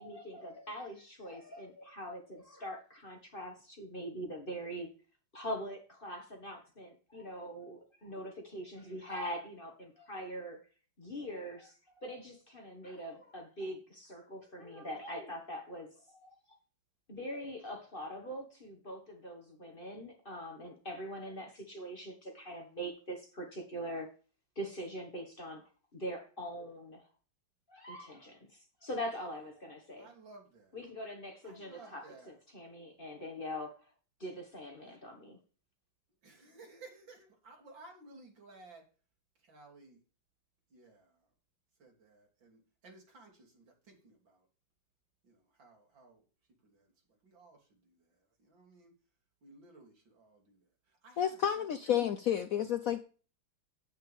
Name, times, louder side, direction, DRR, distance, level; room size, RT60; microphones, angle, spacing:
voice 1, 0.0-4.9 5.3-10.6 11.0-16.3 17.1-24.1 24.5-27.0 27.7-30.1 30.7-33.8 34.2-35.4, equal, 30° left, 3 dB, 1.6 m, -43 dB
voice 2, 30.0-30.8 31.4-32.4 36.2-38.8 39.4-40.0 40.7-41.2 41.8-44.5 45.2-46.2 46.6-48.9 49.4-52.0, right 3 dB, 65° right, 0 dB, 3.5 m, -57 dB
voice 3, 51.2-53.0, left 10 dB, 90° left, 10 dB, 0.7 m, -30 dB
9.1 x 8.9 x 3.5 m, 0.37 s
omnidirectional pair, 2.2 m